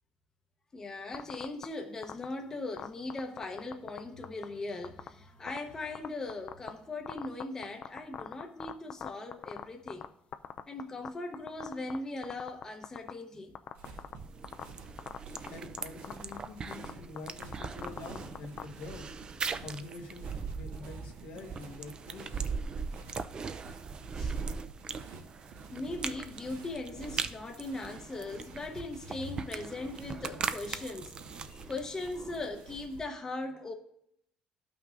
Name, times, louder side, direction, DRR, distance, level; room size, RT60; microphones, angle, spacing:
voice 1, 0.7-10.1 10.7-13.5 24.2-24.4 25.7-31.1 31.5-33.7, left 2 dB, 20° left, 0.8 m, -39 dB
sound 1, 1.1-1.6 2.0-2.2 2.8-4.0 4.2-4.4 4.8-5.1 5.5-5.6 5.9-6.7 7.1-10.1 10.3-11.1 11.3-12.0 12.2-13.1 13.5-14.1 14.4-14.6 15.0-15.5 15.8-15.9 16.0-16.4 16.7-18.6, left 9 dB, 50° left, 0.4 m, -39 dB
sound 2, 13.7-33.0, right 3 dB, 85° right, 1.2 m, -51 dB
sound 3, 14.2-32.5, right 5 dB, 30° right, 0.4 m, -40 dB
voice 2, 15.5-19.1 19.6-22.4, left 3 dB, 85° left, 1.5 m, -46 dB
12.0 x 5.7 x 2.5 m
cardioid pair, 115°, 3 cm